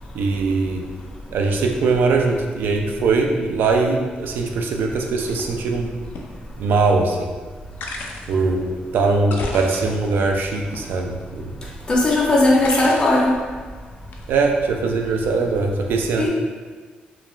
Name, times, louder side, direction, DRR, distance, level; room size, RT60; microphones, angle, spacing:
voice 1, 0.1-0.8 1.3-5.9 6.6-7.3 8.3-11.5 14.3-16.3, right 3 dB, 75° right, 2 dB, 0.3 m, -21 dB
sound 1, 5.2-5.4 6.2-6.3 7.8-8.4 9.2-10.2 10.7-11.4 12.6-13.3 14.1-14.4, left 2 dB, 75° left, 0.4 m, -32 dB
voice 2, 11.9-13.4 16.2-16.3, left 2 dB, 25° left, -4 dB, 0.5 m, -17 dB
2.3 x 2.1 x 3.0 m, 1.4 s
cardioid pair, 110°, 3 cm